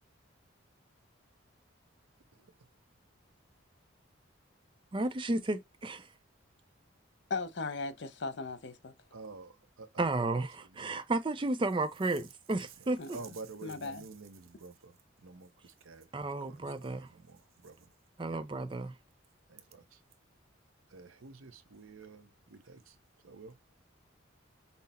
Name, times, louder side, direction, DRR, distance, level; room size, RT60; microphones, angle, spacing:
voice 1, 4.9-6.1 10.0-13.2 16.1-17.1 18.2-18.9, right 2 dB, 25° right, 0.4 m, -33 dB
voice 2, 7.3-8.9 13.0-13.4 13.6-14.1, left 4 dB, 60° left, 0.6 m, -38 dB
voice 3, 9.1-10.5 10.8-10.9 13.1-14.9 15.2-16.1 16.5-17.8 18.3-18.4 19.5-19.8 20.9-22.9 23.2-23.5, right 4 dB, 85° right, 0.7 m, -49 dB
5.6 x 2.0 x 4.1 m
head